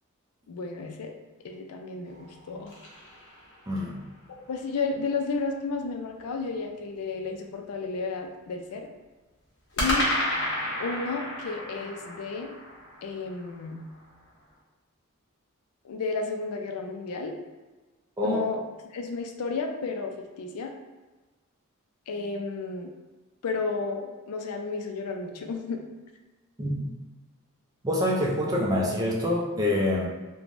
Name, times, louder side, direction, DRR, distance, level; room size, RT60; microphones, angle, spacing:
voice 1, 0.5-1.1 1.4-2.7 4.5-8.9 9.8-10.1 10.8-12.6 13.0-13.8 15.8-17.4 18.2-18.7 18.9-20.7 22.1-22.9 23.4-25.8, left 4 dB, 85° left, 3 dB, 0.4 m, -32 dB
sound 1, 2.1-4.0 9.8-14.0, left 1 dB, 55° left, 0.8 m, -32 dB
voice 2, 3.7-4.0 18.2-18.4 26.6-26.9 27.8-30.1, left 1 dB, 15° right, -3 dB, 0.4 m, -26 dB
3.2 x 2.1 x 2.5 m, 1.2 s
head